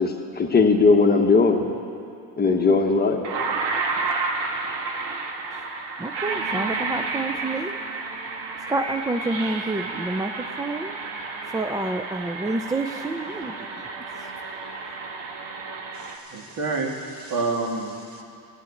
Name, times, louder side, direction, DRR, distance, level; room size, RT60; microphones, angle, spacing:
voice 1, 0.0-1.7 2.4-3.2, left 4 dB, 20° left, 2 dB, 1.2 m, -19 dB
sound 1, 2.6-2.7 3.2-16.2, right 4 dB, 65° right, 1.5 m, -31 dB
voice 2, 6.0-7.7 8.7-10.9 11.5-13.9 14.2-14.3, right 2 dB, 10° right, 6 dB, 0.3 m, -28 dB
voice 3, 16.0-18.2, right 3 dB, 50° right, 1 dB, 2.2 m, -29 dB
15.0 x 9.1 x 8.4 m, 2.6 s
cardioid pair, 115°, 45 cm